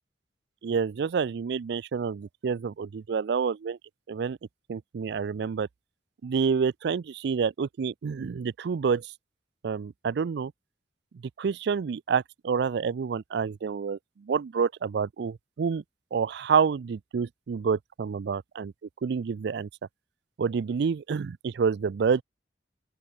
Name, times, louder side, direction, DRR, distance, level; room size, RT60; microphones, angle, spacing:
voice 1, 0.6-3.8 4.1-4.4 4.7-5.7 6.2-9.1 9.6-10.5 11.4-15.8 16.1-18.7 19.0-19.7 20.4-22.2, right 6 dB, 65° right, 0.4 m, -28 dB
open air
head